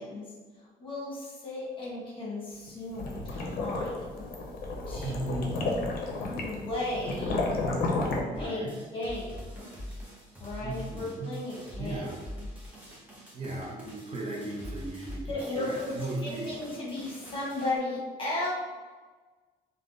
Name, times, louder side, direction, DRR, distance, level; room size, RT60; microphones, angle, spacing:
voice 1, 0.0-4.3 4.9-5.8 6.1-7.5 8.4-9.7 10.4-12.1 15.3-15.9 16.2-18.5, left 2 dB, 30° left, -5 dB, 1.1 m, -36 dB
sound 1, 2.7-8.2, left 2 dB, 60° left, 0.6 m, -32 dB
voice 2, 5.0-5.7 8.3-8.8 10.6-11.3 11.8-12.2 13.3-16.5, right 2 dB, 35° right, -3 dB, 0.7 m, -36 dB
sound 2, 8.3-17.8, equal, 10° right, 0.8 m, -44 dB
3.4 x 2.2 x 2.5 m, 1.3 s
cardioid pair, 110°, 17 cm